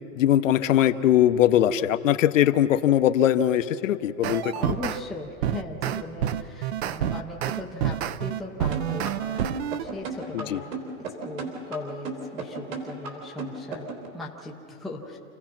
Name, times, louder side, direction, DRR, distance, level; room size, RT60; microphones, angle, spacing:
voice 1, 0.2-4.5 10.3-10.6, left 11 dB, 65° left, 11 dB, 0.9 m, -21 dB
sound 1, 4.2-5.0 5.4-9.8, right 10 dB, 50° right, 0.7 m, -28 dB
voice 2, 4.5-15.2, left 2 dB, ahead, -3 dB, 0.6 m, -38 dB
sound 2, 8.7-14.1, right 4 dB, 70° right, 4.0 m, -34 dB
28.0 x 16.0 x 5.9 m, 2.7 s
hypercardioid pair, 160°, 42 cm